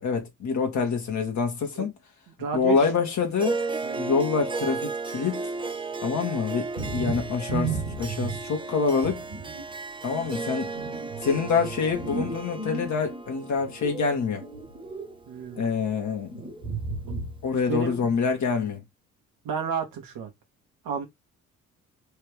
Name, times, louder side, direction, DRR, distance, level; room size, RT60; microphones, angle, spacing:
voice 1, 0.0-1.9 2.5-3.6 4.0-5.4 6.0-9.2 10.0-10.7 11.2-14.4 15.6-16.3 17.4-18.8, left 5 dB, 45° left, 1.8 m, -26 dB
voice 2, 2.4-2.8 3.8-4.1 15.3-15.6 17.7-18.0 19.4-20.3 20.8-21.0, right 6 dB, 55° right, 1.7 m, -31 dB
Harp, 3.4-15.9, right 3 dB, 10° right, 0.7 m, -35 dB
sound 1, 6.7-8.6 9.0-9.7 10.1-13.2 13.6-15.2 15.4-15.8 16.3-17.5 17.8-18.2, right 4 dB, 85° right, 1.8 m, -34 dB
4.5 x 3.3 x 3.5 m
figure-of-eight pair, 45°, 40 cm